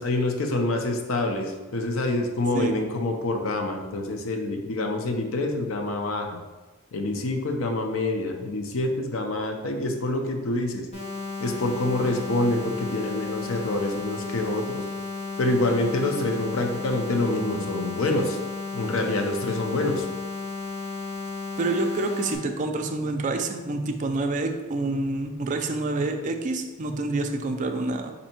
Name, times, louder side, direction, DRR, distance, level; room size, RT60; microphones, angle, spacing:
voice 1, 0.0-6.4 6.9-10.9 11.4-14.8 15.4-18.4 18.7-20.1, left 2 dB, 70° left, 4 dB, 0.5 m, -26 dB
sound 1, 10.9-22.3, left 3 dB, 30° left, 1.0 m, -34 dB
voice 2, 21.6-28.1, right 2 dB, 35° right, 5 dB, 0.4 m, -27 dB
4.3 x 2.7 x 4.3 m, 1.2 s
head